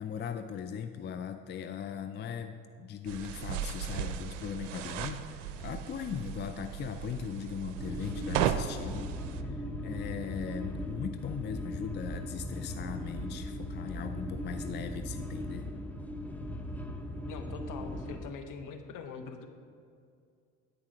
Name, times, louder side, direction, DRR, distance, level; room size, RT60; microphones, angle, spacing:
voice 1, 0.0-9.1 9.4-15.7, left 8 dB, 30° left, 9 dB, 0.4 m, -39 dB
sound 1, 3.1-9.4, right 9 dB, 85° right, 0.5 m, -36 dB
sound 2, 7.8-18.3, left 1 dB, 5° left, 0.8 m, -38 dB
voice 2, 17.3-19.5, left 5 dB, 55° left, 6 dB, 1.0 m, -43 dB
9.7 x 4.8 x 5.0 m, 2.3 s
hypercardioid pair, 65°, 37 cm